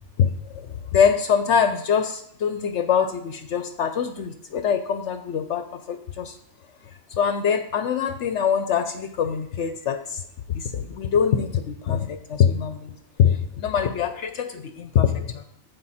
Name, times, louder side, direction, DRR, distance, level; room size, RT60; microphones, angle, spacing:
voice 1, 0.2-6.4 7.1-10.2 10.5-15.4, left 7 dB, 65° left, 9 dB, 0.9 m, -24 dB
15.0 x 5.3 x 4.2 m, 0.71 s
omnidirectional pair, 1.4 m